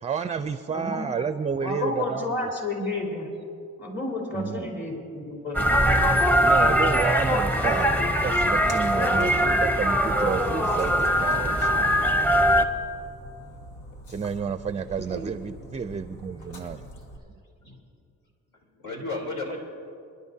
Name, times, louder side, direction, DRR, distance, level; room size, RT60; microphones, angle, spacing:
voice 1, 0.0-2.3 4.3-4.7 6.4-11.9 14.1-16.8, right 6 dB, 25° right, 10 dB, 0.4 m, -31 dB
voice 2, 0.7-1.1 1.6-3.3 3.8-5.6, left 2 dB, 40° left, -2 dB, 3.9 m, -31 dB
sound 1, 5.5-12.6, equal, 5° left, 0.8 m, -21 dB
Splash splatter, 8.3-17.2, equal, 90° left, 1.7 m, -44 dB
voice 3, 18.7-19.6, left 2 dB, 75° left, -1 dB, 3.5 m, -33 dB
28.5 x 11.0 x 2.8 m, 2.5 s
cardioid pair, 90°, 30 cm